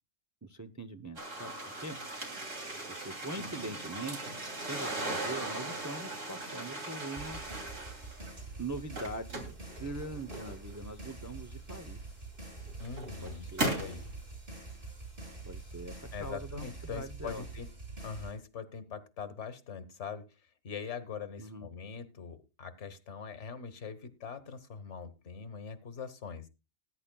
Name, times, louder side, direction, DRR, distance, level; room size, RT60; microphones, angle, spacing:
voice 1, 0.4-2.0 3.0-7.4 8.6-12.0 13.2-13.7 15.5-17.4 21.4-21.7, right 2 dB, 20° right, 8 dB, 0.5 m, -42 dB
sound 1, 1.2-8.4 8.8-10.8 11.7-11.8 12.5-14.0, right 2 dB, 85° right, 3.2 m, -38 dB
sound 2, 7.2-18.3, right 3 dB, 45° right, 7.6 m, -45 dB
voice 2, 12.8-14.0 16.1-17.7 18.0-20.2 20.6-26.5, left 6 dB, 70° left, 13 dB, 1.5 m, -42 dB
19.5 x 9.9 x 2.2 m, 0.27 s
omnidirectional pair, 1.3 m